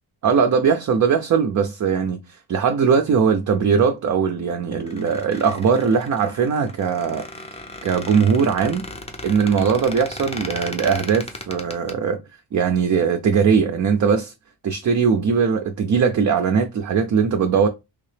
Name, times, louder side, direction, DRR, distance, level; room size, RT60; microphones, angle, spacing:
voice 1, 0.2-7.3 7.8-8.9 9.2-12.2 12.5-14.3 14.6-17.7, right 6 dB, 40° right, 0.4 m, -20 dB
Squeak, 4.7-11.9, left 2 dB, 15° left, 0.5 m, -36 dB
3.5 x 2.7 x 3.3 m
wide cardioid pair, 135°, 47 cm